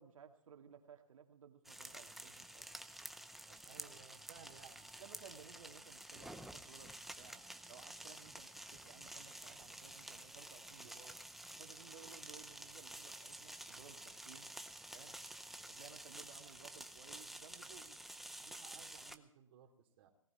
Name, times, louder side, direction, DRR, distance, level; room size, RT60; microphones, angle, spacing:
voice 1, 0.0-2.7 5.0-11.2 11.6-14.5 14.9-15.2 15.7-18.0, right 7 dB, 70° right, 5 dB, 2.3 m, -59 dB
sound 1, 1.7-19.2, right 1 dB, ahead, 0.6 m, -51 dB
voice 2, 3.5-4.9 18.4-20.1, right 8 dB, 45° right, 3 dB, 3.2 m, -60 dB
18.5 x 14.0 x 4.4 m, 0.70 s
hypercardioid pair, 140°, 18 cm